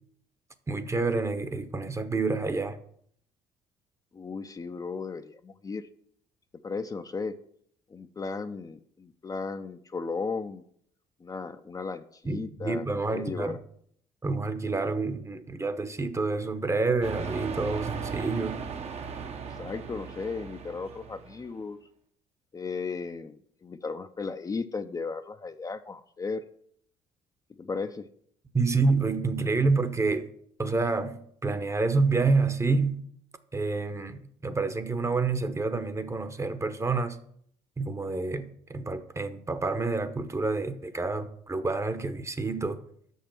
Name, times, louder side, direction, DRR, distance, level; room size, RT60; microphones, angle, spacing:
voice 1, 0.7-2.8 12.3-13.6 14.2-18.6 28.5-30.3 30.6-33.1 33.5-37.2 37.8-42.8, right 3 dB, 20° right, 0.9 m, -28 dB
voice 2, 4.1-5.9 6.6-7.4 7.9-10.6 11.2-13.6 19.4-21.8 22.5-26.4 27.6-28.1, left 4 dB, 25° left, 0.5 m, -35 dB
sound 1, 17.0-21.5, right 6 dB, 55° right, 1.0 m, -37 dB
6.4 x 5.5 x 6.0 m
supercardioid pair, 65°, 13 cm